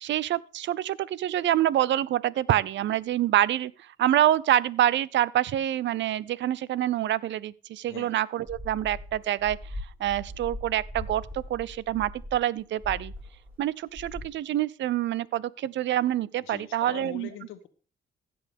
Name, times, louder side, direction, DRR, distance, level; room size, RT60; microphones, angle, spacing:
voice 1, 0.0-3.7 4.0-9.6 10.0-13.1 13.6-17.3, right 12 dB, 65° right, 0.5 m, -26 dB
sound 1, 8.5-13.6 13.9-14.3, left 1 dB, 10° right, 6.5 m, -40 dB
voice 2, 16.4-17.7, left 11 dB, 85° left, 1.2 m, -42 dB
15.5 x 7.0 x 3.5 m
cardioid pair, 90°, 20 cm